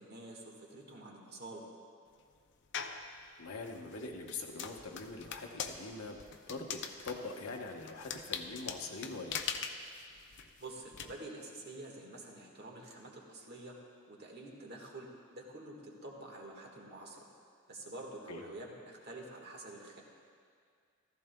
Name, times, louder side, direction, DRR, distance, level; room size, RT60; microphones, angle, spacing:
voice 1, 0.0-1.6 10.6-13.7 14.1-15.1 15.3-17.2 17.7-20.0, right 2 dB, 50° right, -1 dB, 1.7 m, -48 dB
sound 1, 2.7-3.1 3.6-11.0, left 7 dB, 55° left, 0.6 m, -42 dB
voice 2, 3.4-6.2 6.5-9.4 18.3-18.4, left 3 dB, 85° left, 1 dB, 1.1 m, -43 dB
14.5 x 14.5 x 2.3 m, 2.1 s
head